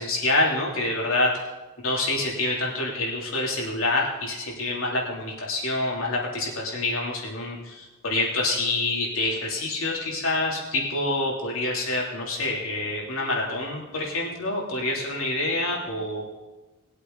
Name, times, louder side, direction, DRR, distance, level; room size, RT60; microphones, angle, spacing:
voice 1, 0.0-1.4 1.8-16.3, left 2 dB, 70° left, -2 dB, 3.2 m, -27 dB
21.0 x 8.3 x 4.0 m, 1.1 s
head